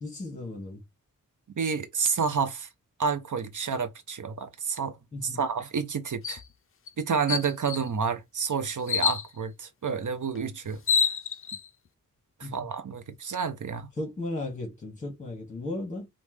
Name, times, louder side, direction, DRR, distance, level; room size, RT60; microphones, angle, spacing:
voice 1, 0.0-0.8 5.1-5.4 12.4-12.7 14.0-16.1, left 2 dB, 20° left, 2.0 m, -35 dB
voice 2, 1.6-2.7 3.0-5.0 5.2-6.4 7.0-10.8 12.5-13.9, right 6 dB, 60° right, 0.8 m, -29 dB
sound 1, 6.2-6.4 6.9-7.0 7.3-7.9 8.9-9.3 10.4-10.5 10.7-11.6, left 7 dB, 40° left, 0.4 m, -26 dB
5.2 x 2.6 x 3.2 m
wide cardioid pair, 80°, 34 cm